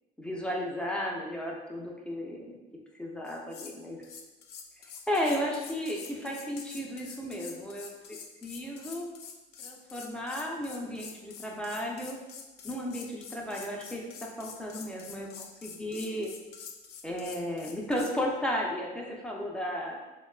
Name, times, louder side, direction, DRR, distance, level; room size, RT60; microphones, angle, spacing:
voice 1, 0.2-2.5 3.0-4.0 5.1-9.1 9.6-12.2 12.6-16.3 17.0-20.0, equal, 5° left, -2 dB, 0.4 m, -34 dB
sound 1, 3.2-3.8 4.0-18.1, left 6 dB, 70° left, 0.4 m, -46 dB
3.4 x 2.2 x 2.3 m, 1.1 s
cardioid pair, 110°, 17 cm